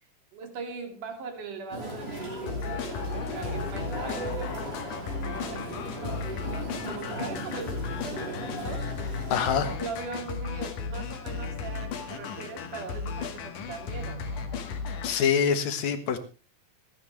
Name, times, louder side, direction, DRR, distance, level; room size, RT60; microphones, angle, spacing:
voice 1, 0.3-8.9 9.8-14.5, right 4 dB, 85° right, 5 dB, 4.0 m, -41 dB
sound 1, 1.7-9.8, equal, 20° right, 5.0 m, -37 dB
sound 2, 2.5-15.2, left 5 dB, 85° left, 3.3 m, -35 dB
voice 2, 9.3-9.7 15.0-16.2, left 7 dB, 65° left, 9 dB, 2.6 m, -25 dB
26.5 x 9.6 x 3.2 m, 0.32 s
omnidirectional pair, 3.5 m